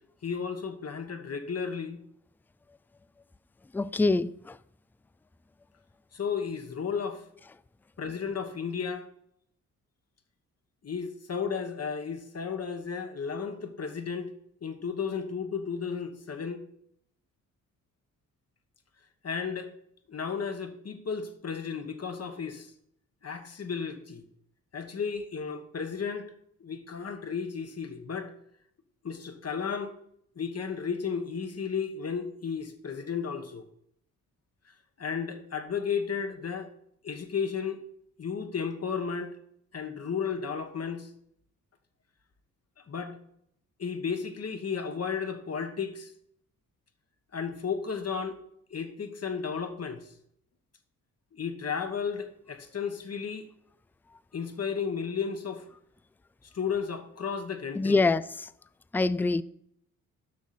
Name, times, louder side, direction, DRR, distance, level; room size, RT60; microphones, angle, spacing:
voice 1, 0.2-2.0 6.1-7.2 8.0-9.1 10.8-14.3 14.6-16.6 19.2-19.7 20.1-22.7 23.2-24.2 24.7-26.3 26.6-28.3 29.0-29.9 30.3-33.6 35.0-36.7 37.0-37.8 38.2-39.4 39.7-41.1 42.8-43.2 43.8-46.1 47.3-48.4 48.7-50.1 51.3-53.5 54.3-55.7 56.5-58.0, left 6 dB, 45° left, 1.4 m, -33 dB
voice 2, 3.7-4.6 57.7-58.5 58.9-59.4, left 3 dB, 5° left, 0.3 m, -25 dB
7.2 x 6.1 x 4.3 m
supercardioid pair, 50°, 35 cm